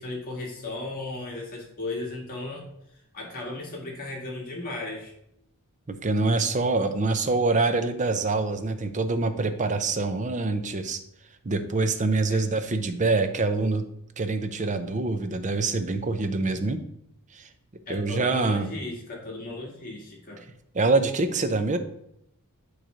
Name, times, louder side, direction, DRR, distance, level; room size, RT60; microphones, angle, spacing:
voice 1, 0.0-2.7 3.1-5.1 12.3-12.5 17.9-20.4, left 2 dB, 40° left, -2 dB, 1.8 m, -35 dB
voice 2, 5.9-11.0 11.4-13.8 14.2-16.8 17.3-17.5 17.9-18.7 20.7-21.8, right 3 dB, 35° right, 8 dB, 0.6 m, -25 dB
9.0 x 3.2 x 5.0 m, 0.77 s
head